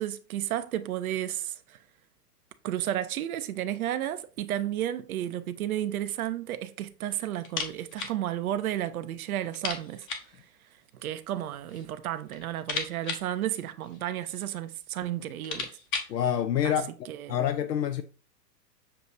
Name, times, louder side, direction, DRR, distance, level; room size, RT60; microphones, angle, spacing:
voice 1, 0.0-1.8 2.6-10.5 10.9-15.8 16.6-16.7 17.1-17.4, right 12 dB, 60° right, 0.6 m, -32 dB
sound 1, 7.4-8.2 8.5-8.6 8.9-9.0 9.5-10.4 11.3-11.9 12.2-14.2 14.9-15.0 15.3-16.2, left 5 dB, 25° left, 0.8 m, -36 dB
voice 2, 16.1-16.9 17.3-18.0, left 9 dB, 80° left, 0.5 m, -27 dB
6.8 x 2.8 x 2.5 m
figure-of-eight pair, 100°, 50 cm